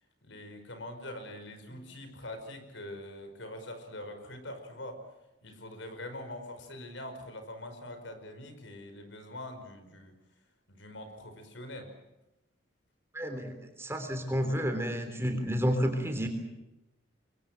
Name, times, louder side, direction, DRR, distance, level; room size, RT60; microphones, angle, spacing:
voice 1, 0.2-5.0 5.4-10.1 10.7-11.9, left 1 dB, 75° left, 8 dB, 5.2 m, -43 dB
voice 2, 13.1-16.3, equal, 15° right, 6 dB, 3.4 m, -30 dB
27.0 x 23.0 x 7.7 m, 0.98 s
head